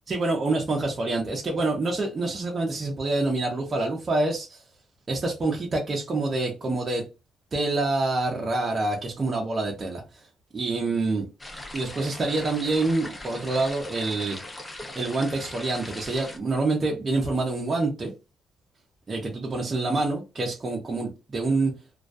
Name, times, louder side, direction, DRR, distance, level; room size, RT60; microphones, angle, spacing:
voice 1, 0.1-4.6 5.1-7.0 7.5-10.3 10.5-11.3 11.7-14.4 15.0-18.1 19.1-21.7, right 2 dB, 35° right, 0.6 m, -26 dB
sound 1, 11.4-16.4, left 1 dB, 15° left, 0.6 m, -40 dB
2.3 x 2.2 x 2.5 m
cardioid pair, 90°, 0 cm